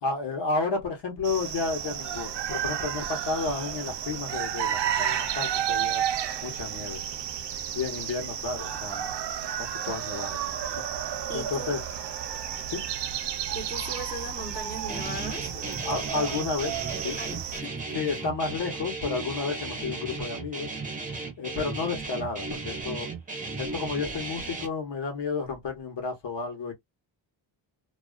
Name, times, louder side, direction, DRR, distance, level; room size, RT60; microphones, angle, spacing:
voice 1, 0.0-6.0 6.4-7.0 7.7-9.1 9.6-11.8 12.7-12.8 15.8-16.8 17.0-17.2 17.9-20.7 21.4-23.1 23.6-26.7, left 4 dB, 60° left, 1.0 m, -32 dB
sound 1, 1.2-17.6, right 10 dB, 65° right, 0.5 m, -32 dB
voice 2, 11.3-11.7 13.5-16.0 16.9-18.0, equal, 20° left, 0.9 m, -39 dB
Guitar, 14.9-24.7, right 3 dB, 15° right, 0.8 m, -36 dB
2.3 x 2.3 x 2.3 m
wide cardioid pair, 165°, 47 cm